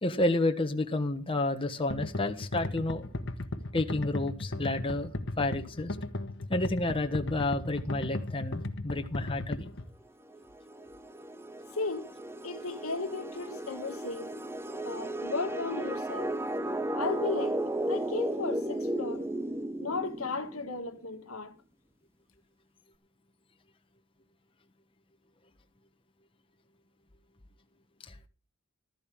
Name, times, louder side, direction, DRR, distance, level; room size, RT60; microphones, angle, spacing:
voice 1, 0.0-3.1 3.7-5.1 5.4-6.0 6.5-9.7, left 2 dB, 25° left, 1.2 m, -30 dB
sound 1, 1.9-9.9, left 2 dB, 55° left, 1.4 m, -35 dB
sound 2, 10.3-20.9, right 1 dB, 10° right, 0.6 m, -35 dB
voice 2, 11.8-12.1 12.4-14.3 14.8-16.3 16.9-17.6 17.9-19.3 19.8-21.6, left 3 dB, 80° left, 1.7 m, -35 dB
14.5 x 13.5 x 3.6 m
head